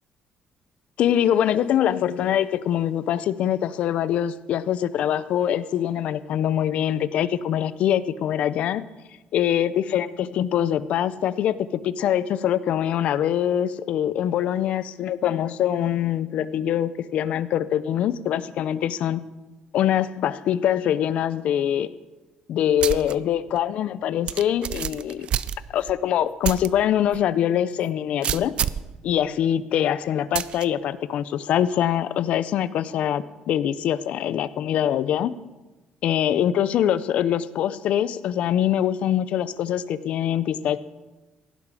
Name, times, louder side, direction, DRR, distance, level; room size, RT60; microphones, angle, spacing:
voice 1, 1.0-8.8 9.3-19.2 19.7-21.9 22.5-25.3 25.7-28.5 29.0-35.3 36.0-40.8, left 10 dB, 55° left, 16 dB, 0.5 m, -23 dB
sound 1, 22.8-23.1 23.6-23.7 24.3-25.9 26.4-26.7 27.1-27.2 28.2-28.9 30.3-30.6, right 9 dB, 45° right, 0.4 m, -27 dB
16.5 x 11.0 x 4.8 m, 1.1 s
cardioid pair, 175°, 3 cm